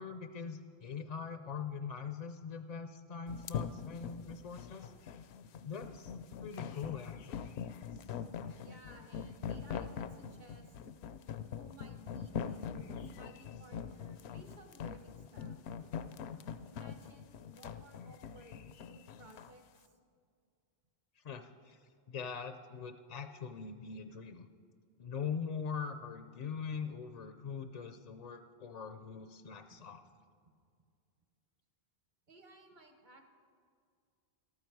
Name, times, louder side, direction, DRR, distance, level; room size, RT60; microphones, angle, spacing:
voice 1, 0.0-4.9 5.6-7.5 21.2-21.8 22.1-24.5 25.0-30.0, left 6 dB, 50° left, 9 dB, 0.5 m, -42 dB
sound 1, 3.3-19.5, left 7 dB, 80° left, 0.8 m, -43 dB
voice 2, 8.6-10.8 11.6-15.7 16.6-20.0 29.7-29.8 32.3-33.2, right 1 dB, 45° right, 5 dB, 1.3 m, -57 dB
14.0 x 12.0 x 4.6 m, 2.2 s
omnidirectional pair, 1.1 m